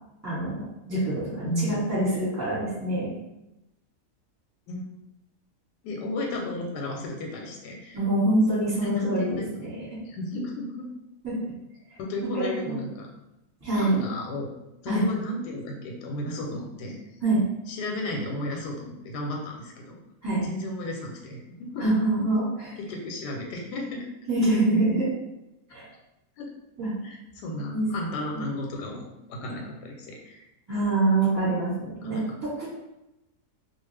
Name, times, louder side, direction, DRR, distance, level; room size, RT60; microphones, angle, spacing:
voice 1, 0.2-3.1 7.9-9.9 11.2-11.4 12.3-12.7 13.6-13.9 14.9-15.0 17.2-17.4 20.2-20.4 21.8-22.7 24.3-25.1 25.7-25.9 26.8-26.9 27.7-27.8 30.7-32.7, right 2 dB, 10° right, -8 dB, 1.1 m, -25 dB
voice 2, 1.4-1.8 4.7-4.8 5.8-8.0 8.8-9.7 10.1-10.9 12.0-13.1 13.7-14.5 14.8-17.0 17.7-20.0 20.4-21.9 22.8-24.1 26.4-26.5 27.0-30.4 32.0-32.2, left 1 dB, 90° left, 0 dB, 1.2 m, -33 dB
2.4 x 2.4 x 3.2 m, 0.92 s
omnidirectional pair, 1.7 m